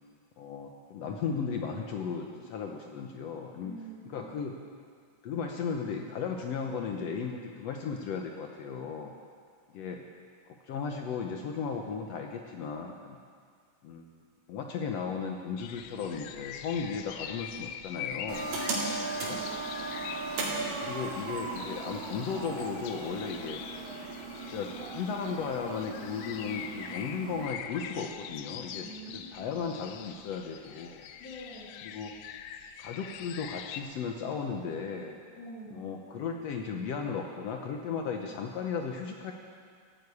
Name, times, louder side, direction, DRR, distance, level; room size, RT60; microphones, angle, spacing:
voice 1, 0.4-3.7 4.1-4.5 5.2-9.1 9.7-10.0 10.5-13.2 13.8-14.1 14.5-18.5 19.2-19.4 20.6-23.6 24.3-28.9 29.1-31.1 31.8-32.1 32.8-35.2 35.7-39.3, left 6 dB, 70° left, 2 dB, 1.6 m, -35 dB
voice 2, 3.6-4.2 18.5-19.7 28.8-29.7 31.2-31.8 35.4-35.9, equal, 45° left, -10 dB, 4.0 m, -46 dB
sound 1, 15.6-33.8, left 9 dB, 90° left, 2.3 m, -44 dB
sound 2, 18.3-27.5, right 3 dB, 80° right, 3.9 m, -37 dB
14.5 x 9.3 x 8.4 m, 2.1 s
omnidirectional pair, 3.9 m